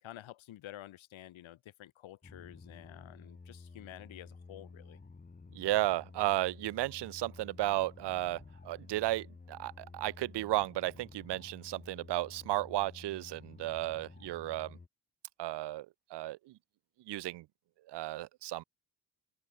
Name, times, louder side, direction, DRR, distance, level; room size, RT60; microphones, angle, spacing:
voice 1, 0.0-5.0, left 13 dB, 80° left, 3.8 m, -50 dB
sound 1, 2.2-14.9, left 4 dB, 20° left, 1.0 m, -52 dB
voice 2, 5.5-14.8 15.4-15.9 16.1-16.5 17.1-17.5 17.9-18.6, right 16 dB, 60° right, 0.6 m, -34 dB
open air
supercardioid pair, 55°, 46 cm